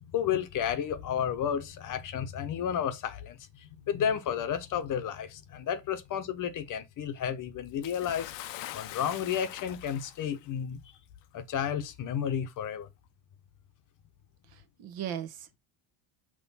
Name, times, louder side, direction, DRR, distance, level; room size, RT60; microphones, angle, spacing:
voice 1, 0.0-8.3 8.7-10.8 11.3-12.9, left 8 dB, 40° left, 1.0 m, -32 dB
Bathtub (filling or washing) / Splash splatter, 7.8-10.4 11.4-11.5 12.4-12.5, left 15 dB, 65° left, 0.8 m, -43 dB
voice 2, 14.5-15.6, right 10 dB, 50° right, 1.2 m, -38 dB
6.1 x 3.2 x 5.5 m
cardioid pair, 130°, 47 cm